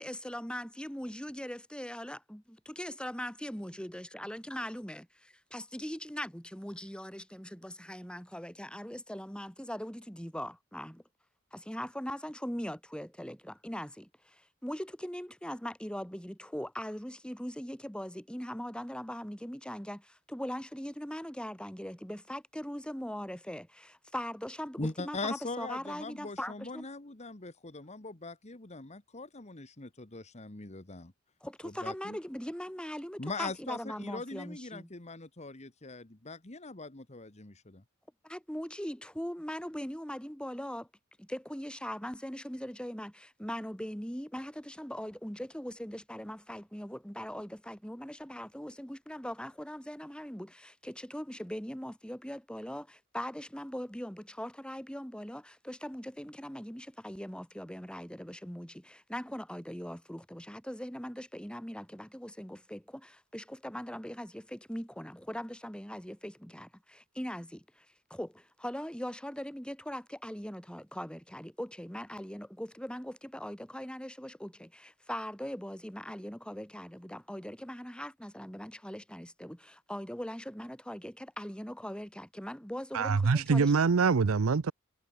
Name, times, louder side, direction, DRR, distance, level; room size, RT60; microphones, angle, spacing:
voice 1, 0.0-11.0 11.5-26.9 31.4-34.9 38.2-40.9 41.2-83.7, equal, 5° left, 5.9 m, -40 dB
voice 2, 24.8-31.1 31.6-32.2 33.2-37.8, left 3 dB, 35° left, 1.6 m, -41 dB
voice 3, 82.9-84.7, right 5 dB, 85° right, 0.6 m, -25 dB
head